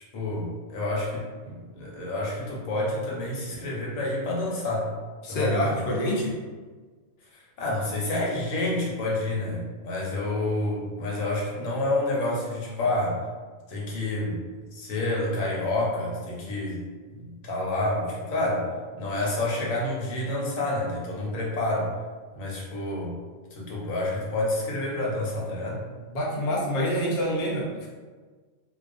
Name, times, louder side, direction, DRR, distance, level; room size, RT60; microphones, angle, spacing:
voice 1, 0.1-4.9 5.3-5.8 7.3-13.2 13.7-14.4 14.7-16.9 17.1-18.7 18.9-21.9 22.3-23.2 23.5-25.8, left 2 dB, 85° left, -3 dB, 1.1 m, -29 dB
voice 2, 5.2-6.4 26.1-27.9, equal, 55° left, -3 dB, 0.5 m, -26 dB
2.3 x 2.3 x 2.5 m, 1.4 s
omnidirectional pair, 1.3 m